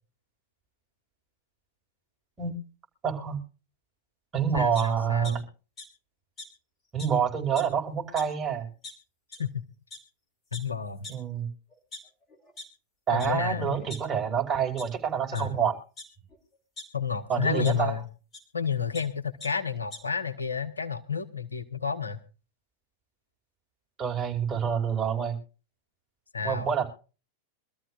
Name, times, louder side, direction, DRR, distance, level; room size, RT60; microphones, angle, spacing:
voice 1, 3.0-3.4 4.3-5.4 6.9-8.7 11.1-11.5 13.1-15.7 17.3-17.9 24.0-25.4 26.4-26.9, right 7 dB, 20° right, 0 dB, 5.1 m, -27 dB
voice 2, 4.5-5.4 9.4-9.7 10.5-11.1 13.1-13.8 15.3-15.6 16.9-18.0 18.5-22.2 26.3-26.7, left 6 dB, 75° left, 10 dB, 1.2 m, -31 dB
sound 1, 4.7-5.3 5.8-5.9 6.4-6.5 7.0-7.1 7.4-7.7 8.2-8.3 8.8-8.9 9.3-9.4 9.9-10.0 10.5-10.6 11.0-11.1 11.7-12.6 13.2-13.3 13.6-14.4 14.8-14.9 15.3-15.4 16.0-16.8 17.6-17.7 18.3-18.4 18.7-19.0 19.4-19.5 19.8-20.0, left 3 dB, 25° left, 4.1 m, -42 dB
25.0 x 13.5 x 2.5 m, 0.35 s
figure-of-eight pair, 90°, 0 cm